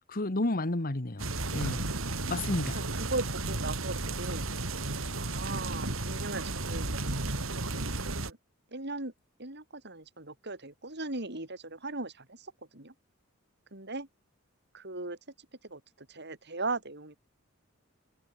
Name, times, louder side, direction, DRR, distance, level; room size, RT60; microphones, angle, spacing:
voice 1, 0.1-1.3 1.5-1.9 2.3-2.8, left 2 dB, 45° left, 1.6 m, -31 dB
sound 1, 1.2-8.3, right 2 dB, 75° right, 3.4 m, -33 dB
voice 2, 2.7-4.5 5.2-7.0 7.5-8.4 8.7-9.1 9.4-12.9 13.7-14.1 14.7-15.2 15.6-17.2, right 2 dB, 55° right, 6.9 m, -38 dB
head